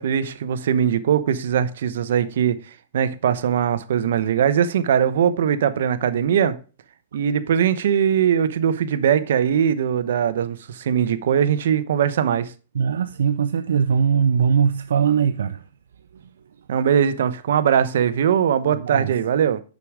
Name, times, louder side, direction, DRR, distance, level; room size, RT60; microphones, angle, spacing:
voice 1, 0.0-2.6 2.9-6.6 7.1-12.5 16.7-19.6, right 8 dB, 70° right, 0.8 m, -20 dB
voice 2, 12.7-15.6 16.1-16.3 18.7-19.1, right 7 dB, 85° right, 0.5 m, -21 dB
6.8 x 6.4 x 4.7 m
hypercardioid pair, 150°, 0 cm